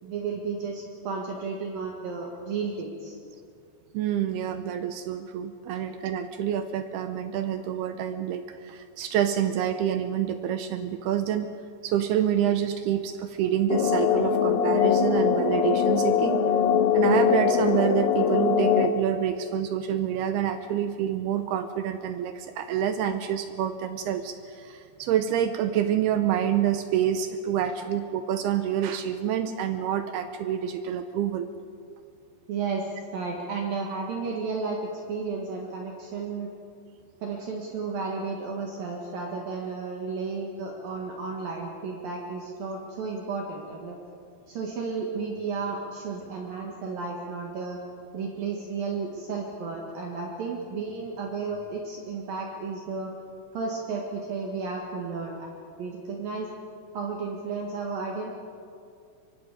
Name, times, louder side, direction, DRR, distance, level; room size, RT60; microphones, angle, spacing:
voice 1, 0.0-3.2 32.5-36.5 37.2-44.0 44.5-47.8 48.1-53.1 53.5-55.5 55.8-56.5 56.9-58.3, right 4 dB, 60° right, -1 dB, 3.2 m, -33 dB
voice 2, 3.9-11.5 11.8-16.5 16.9-31.5, right 10 dB, 80° right, 9 dB, 2.5 m, -27 dB
sound 1, 13.7-18.9, left 8 dB, 70° left, 2.4 m, -22 dB
24.0 x 24.0 x 5.1 m, 2.4 s
omnidirectional pair, 5.1 m